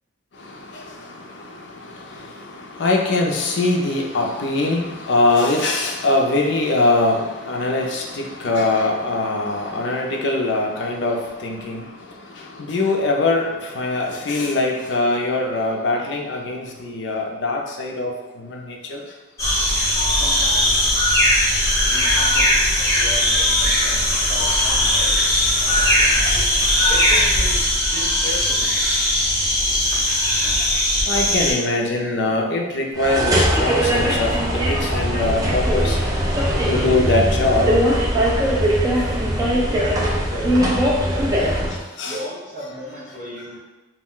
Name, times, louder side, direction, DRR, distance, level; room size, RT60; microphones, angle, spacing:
voice 1, 0.4-11.9 12.4-18.1 18.4-19.0 26.2-26.5 27.1-27.2 31.1-36.0 36.7-37.7 42.0-42.2, left 2 dB, 60° left, 0 dB, 0.4 m, -22 dB
sound 1, 19.4-31.5, left 1 dB, 15° left, 0.7 m, -19 dB
voice 2, 20.2-21.3 21.9-26.0 26.9-28.8 39.7-40.6 41.1-41.7 42.0-43.6, right 1 dB, 35° right, -7 dB, 0.8 m, -34 dB
sound 2, 33.0-41.8, equal, 20° right, 0.3 m, -20 dB
2.3 x 2.1 x 3.6 m, 1.1 s
head